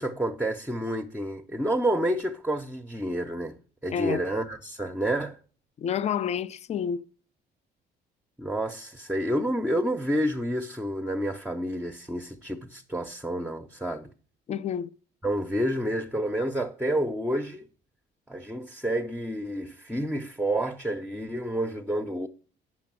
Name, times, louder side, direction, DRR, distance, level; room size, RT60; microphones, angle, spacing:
voice 1, 0.0-5.4 8.4-14.1 15.2-17.7 18.3-22.3, right 1 dB, 5° right, 0.7 m, -29 dB
voice 2, 3.9-4.2 5.8-7.1 14.5-14.9, left 8 dB, 40° left, 0.4 m, -29 dB
8.4 x 6.1 x 6.0 m
cardioid pair, 105°, 18 cm